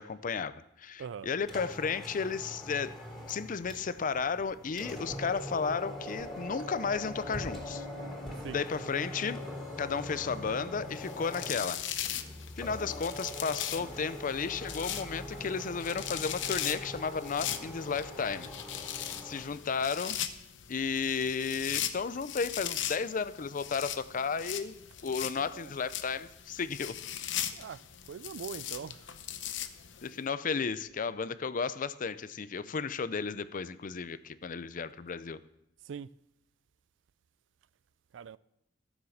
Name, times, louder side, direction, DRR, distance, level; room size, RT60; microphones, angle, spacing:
voice 1, 0.0-3.0 3.3-7.9 8.5-9.4 9.8-11.8 12.6-18.5 19.2-20.2 20.7-24.8 25.0-26.9 30.0-35.4, left 5 dB, 45° left, 0.5 m, -33 dB
voice 2, 1.0-1.3 8.4-8.6 25.4-25.8 27.5-29.1 35.8-36.1 38.1-38.4, right 7 dB, 80° right, 0.4 m, -42 dB
sound 1, 1.4-19.6, left 1 dB, 5° left, 3.3 m, -43 dB
Human voice, 5.0-5.3 6.2-6.5 7.2-7.5 9.1-9.3 10.5-10.9 12.1-12.3 13.7-14.1 14.8-15.1 15.4-15.7, right 1 dB, 25° right, 2.0 m, -58 dB
sound 2, 11.0-30.1, left 10 dB, 85° left, 0.8 m, -39 dB
13.0 x 7.4 x 6.4 m
head